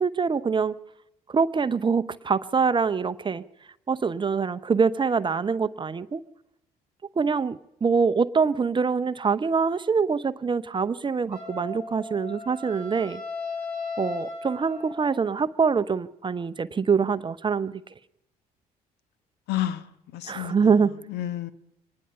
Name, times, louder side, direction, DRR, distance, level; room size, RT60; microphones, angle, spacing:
voice 1, 0.0-0.7 1.3-3.4 3.9-6.2 7.2-13.2 14.0-17.8 20.3-20.9, right 5 dB, 25° right, 13 dB, 0.7 m, -24 dB
Wind instrument woodwind instrument, 11.3-15.3, left 3 dB, 90° left, 5.4 m, -36 dB
voice 2, 19.5-20.6 21.1-21.5, left 12 dB, 55° left, 16 dB, 1.1 m, -30 dB
24.5 x 19.5 x 5.6 m, 0.85 s
figure-of-eight pair, 45°, 20 cm